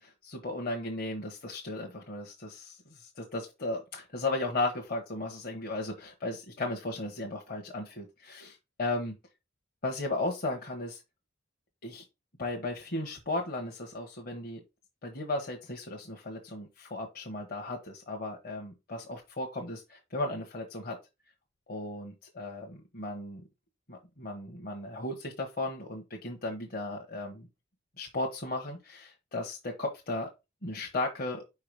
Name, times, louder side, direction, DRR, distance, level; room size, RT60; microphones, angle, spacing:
voice 1, 0.0-9.1 9.8-11.0 11.8-12.0 12.4-14.6 15.0-21.0 21.7-23.4 23.9-27.5 28.0-30.3 30.6-31.4, left 2 dB, 50° left, 1 dB, 1.2 m, -35 dB
5.2 x 4.8 x 5.1 m, 0.24 s
head